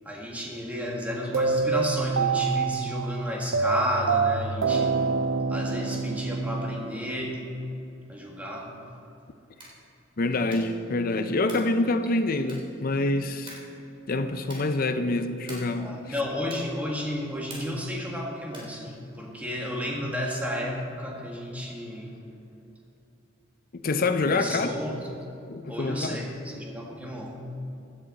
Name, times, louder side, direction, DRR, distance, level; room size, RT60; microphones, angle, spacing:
voice 1, 0.1-5.0 5.5-7.4 8.1-8.7 15.8-22.1 24.2-25.0 25.7-27.4, equal, 10° right, 1.7 m, -32 dB
sound 1, 1.3-7.5, right 5 dB, 70° right, 0.5 m, -26 dB
Wall Socket Switch, 9.5-9.9 10.4-10.8 11.4-11.8 12.4-12.8 13.4-13.8 14.4-14.8 15.4-15.8 16.5-16.8 17.5-17.9 18.5-18.8, right 1 dB, 25° right, 3.5 m, -45 dB
voice 2, 10.2-13.5 14.1-15.9 23.7-24.7 25.5-26.2, left 2 dB, 45° left, 0.6 m, -26 dB
16.5 x 10.5 x 4.1 m
head